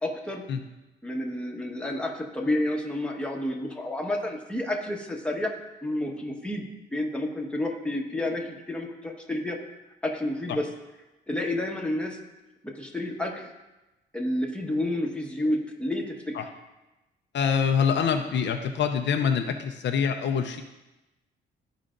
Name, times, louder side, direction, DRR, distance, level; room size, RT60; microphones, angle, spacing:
voice 1, 0.0-0.5 1.0-5.5 5.8-6.7 6.9-9.6 10.0-10.7 11.3-12.2 12.6-13.5 14.1-16.5, left 1 dB, 5° left, -1 dB, 1.3 m, -30 dB
voice 2, 17.3-20.6, left 7 dB, 65° left, 5 dB, 0.6 m, -25 dB
13.5 x 4.9 x 2.5 m, 1.0 s
cardioid pair, 90°, 20 cm